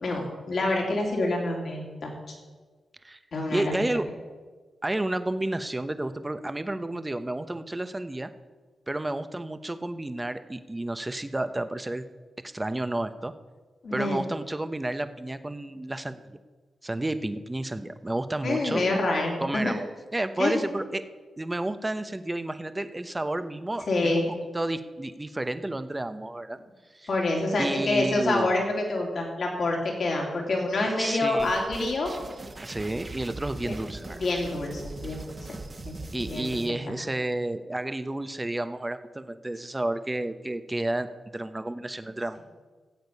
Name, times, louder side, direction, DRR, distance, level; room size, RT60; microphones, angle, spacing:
voice 1, 0.0-2.1 3.3-3.7 13.8-14.2 18.4-19.7 20.4-20.6 23.9-24.3 27.1-32.1 33.6-33.7 34.1-35.6 35.8-36.0 36.3-36.4 36.9-37.0, left 2 dB, 65° left, 0 dB, 3.1 m, -27 dB
voice 2, 3.5-4.1 4.8-8.3 8.9-12.0 12.4-13.3 13.9-16.4 16.8-18.8 19.4-19.9 20.1-21.0 21.4-26.6 26.9-27.1 27.6-28.5 31.0-31.5 32.6-34.2 36.1-42.4, right 1 dB, 20° right, 11 dB, 0.9 m, -31 dB
sound 1, 31.4-36.7, right 2 dB, 35° right, 1.6 m, -41 dB
16.5 x 8.0 x 5.4 m, 1.4 s
cardioid pair, 55°, 0 cm